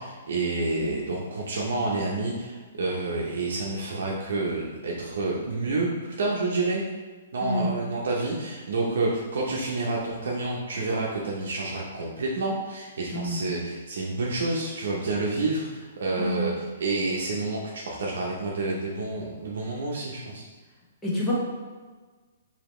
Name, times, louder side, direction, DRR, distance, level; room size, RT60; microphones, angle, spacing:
voice 1, 0.0-6.8 7.3-20.4, right 2 dB, 75° right, -3 dB, 0.7 m, -29 dB
voice 2, 21.0-21.3, left 1 dB, 10° left, -7 dB, 0.9 m, -28 dB
5.0 x 2.8 x 3.1 m, 1.4 s
hypercardioid pair, 165°, 0 cm